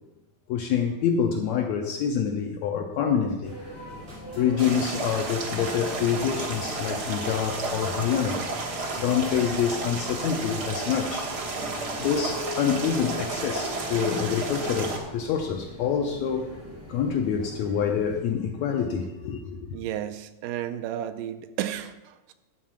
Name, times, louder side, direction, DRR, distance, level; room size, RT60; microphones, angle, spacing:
voice 1, 0.5-3.5 4.4-8.4 9.0-11.3 12.0-16.5 16.9-19.7, left 7 dB, 75° left, 3 dB, 1.7 m, -26 dB
sound 1, 3.4-18.2, equal, 5° right, 1.6 m, -43 dB
sound 2, 3.9-14.9, right 1 dB, 25° right, 2.3 m, -42 dB
sound 3, 4.6-15.0, right 3 dB, 60° right, 1.0 m, -32 dB
voice 2, 19.7-22.3, right 11 dB, 80° right, 10 dB, 2.2 m, -33 dB
11.0 x 4.6 x 7.4 m, 1.0 s
omnidirectional pair, 3.9 m